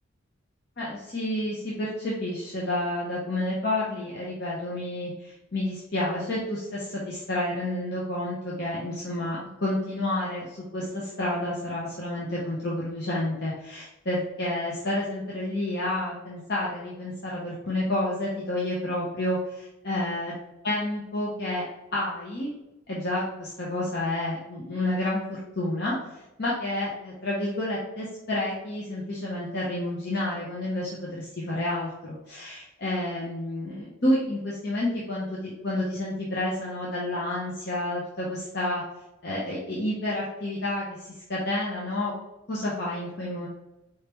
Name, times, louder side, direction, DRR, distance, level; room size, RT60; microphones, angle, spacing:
voice 1, 0.8-20.3 20.6-21.6 21.9-22.5 22.9-26.0 26.4-38.8 39.2-40.9 41.3-42.1 42.5-43.5, left 1 dB, 55° left, -6 dB, 0.9 m, -30 dB
4.7 x 3.4 x 3.0 m, 0.95 s
head